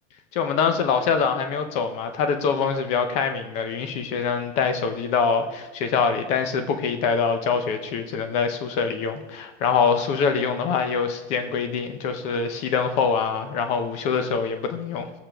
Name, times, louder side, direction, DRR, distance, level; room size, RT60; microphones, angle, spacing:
voice 1, 0.3-15.1, left 6 dB, 20° left, 7 dB, 0.5 m, -24 dB
17.5 x 7.5 x 3.3 m, 1.2 s
supercardioid pair, 175°, 36 cm